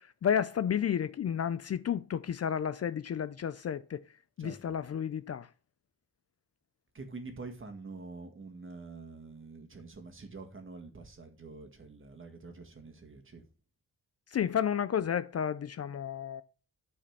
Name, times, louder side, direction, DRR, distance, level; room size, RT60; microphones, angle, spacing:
voice 1, 0.0-4.0 4.4-5.5 14.3-16.4, left 8 dB, 45° left, 0.4 m, -31 dB
voice 2, 4.4-4.8 6.9-13.4, right 3 dB, 35° right, 1.7 m, -46 dB
9.4 x 4.2 x 5.8 m
wide cardioid pair, 105°, 35 cm